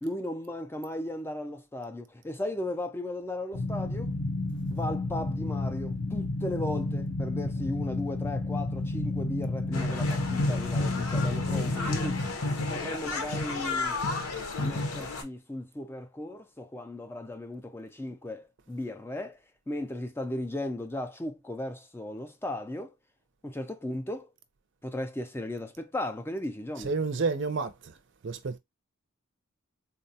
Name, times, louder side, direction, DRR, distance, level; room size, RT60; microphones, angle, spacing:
voice 1, 0.0-4.1 4.7-12.2 12.7-14.0 14.6-19.4 19.7-22.9 23.4-24.3 24.8-26.9, left 1 dB, 10° left, 0.3 m, -36 dB
sound 1, 3.5-12.3, left 2 dB, 55° left, 0.7 m, -31 dB
sound 2, 9.7-15.2, left 2 dB, 85° left, 0.9 m, -30 dB
voice 2, 26.8-28.0 28.2-28.6, right 4 dB, 55° right, 0.5 m, -30 dB
3.8 x 2.2 x 2.7 m
head